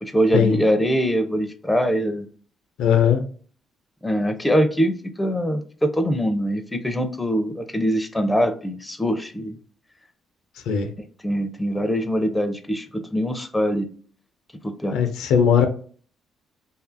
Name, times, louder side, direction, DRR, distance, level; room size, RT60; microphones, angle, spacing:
voice 1, 0.0-2.3 4.0-9.6 11.0-13.9 14.6-15.0, equal, 10° left, 7 dB, 0.4 m, -23 dB
voice 2, 2.8-3.2 10.7-10.9 14.9-15.7, left 8 dB, 90° left, 7 dB, 0.4 m, -18 dB
2.6 x 2.4 x 2.5 m, 0.43 s
cardioid pair, 90°, 0 cm